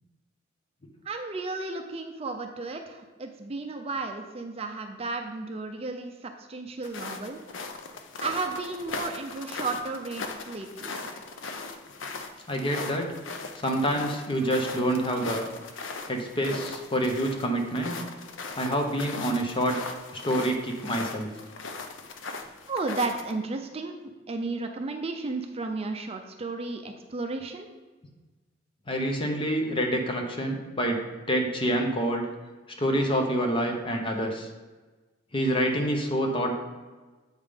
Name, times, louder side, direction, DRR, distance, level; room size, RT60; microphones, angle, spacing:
voice 1, 1.0-7.4 8.2-10.9 22.7-24.0 24.3-27.7, right 3 dB, 30° right, 5 dB, 0.4 m, -33 dB
sound 1, 6.8-23.3, left 3 dB, 75° left, 0.6 m, -39 dB
voice 2, 12.5-13.1 13.5-15.5 16.1-18.0 18.6-19.8 20.2-21.3 28.9-31.0 31.3-32.2 32.8-34.5 35.3-36.6, equal, 25° left, 2 dB, 0.8 m, -27 dB
8.1 x 3.7 x 5.0 m, 1.3 s
head